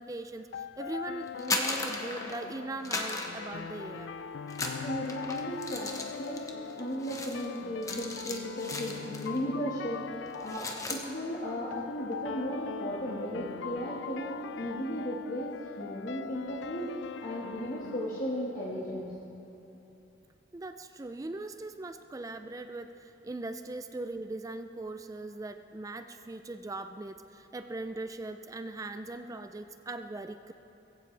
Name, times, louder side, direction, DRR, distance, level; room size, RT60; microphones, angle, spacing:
voice 1, 0.0-4.1 20.5-30.5, right 2 dB, 20° right, 8 dB, 0.3 m, -40 dB
sound 1, 0.5-19.5, left 6 dB, 75° left, 0.4 m, -41 dB
sound 2, 1.3-2.5 2.8-4.1 4.5-9.4 9.7-9.9 10.3-11.1, left 2 dB, 15° left, 1.0 m, -37 dB
voice 2, 4.6-5.9 6.2-15.5 15.8-16.9 17.2-19.1, equal, 45° left, -7 dB, 1.6 m, -36 dB
21.5 x 15.5 x 3.3 m, 2.9 s
head